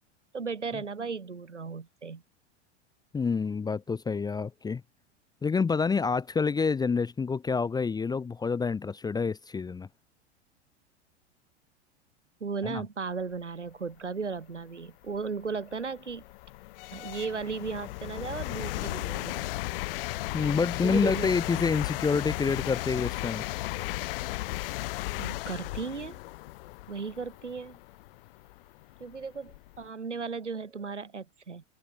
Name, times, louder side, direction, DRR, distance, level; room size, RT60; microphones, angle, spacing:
voice 1, 0.3-2.2 12.4-16.2 16.9-19.5 20.8-21.3 25.2-26.2 26.9-27.8 29.0-31.6, right 5 dB, 80° right, 5.5 m, -36 dB
voice 2, 3.1-4.8 5.4-9.9 12.6-12.8 20.3-23.4, left 5 dB, 10° left, 0.9 m, -28 dB
sound 1, 14.4-14.5 15.1-29.8, left 19 dB, 50° left, 1.1 m, -35 dB
open air
figure-of-eight pair, 90°, 35 cm